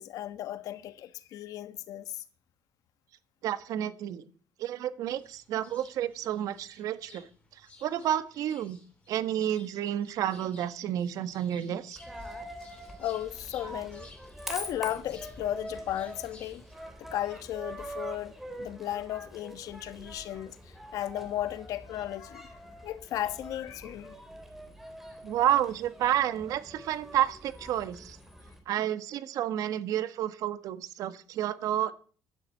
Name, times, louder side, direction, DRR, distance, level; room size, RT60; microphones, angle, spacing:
voice 1, 0.0-2.2 13.0-14.1 14.5-16.6 17.0-24.1, left 12 dB, 75° left, 1.2 m, -35 dB
voice 2, 3.4-4.3 4.6-8.8 9.1-12.0 25.2-28.2 28.7-31.9, right 11 dB, 75° right, 1.3 m, -30 dB
sound 1, 5.1-16.7, left 3 dB, 20° left, 4.7 m, -57 dB
Coin (dropping), 12.0-28.6, right 1 dB, 5° right, 3.0 m, -44 dB
12.0 x 10.0 x 8.2 m
cardioid pair, 170°, 6 cm